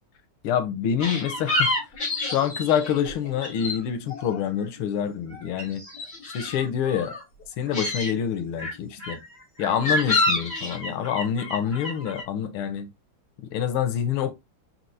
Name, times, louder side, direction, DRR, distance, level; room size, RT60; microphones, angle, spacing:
voice 1, 0.4-1.7 2.2-5.8 6.3-7.2 7.6-9.2 9.6-12.9 13.4-14.3, left 8 dB, 90° left, 1.6 m, -26 dB
sound 1, 1.0-4.9 5.2-7.2 7.6-8.1 8.6-12.2, left 2 dB, 30° left, 2.4 m, -29 dB
4.6 x 4.1 x 2.7 m
omnidirectional pair, 2.3 m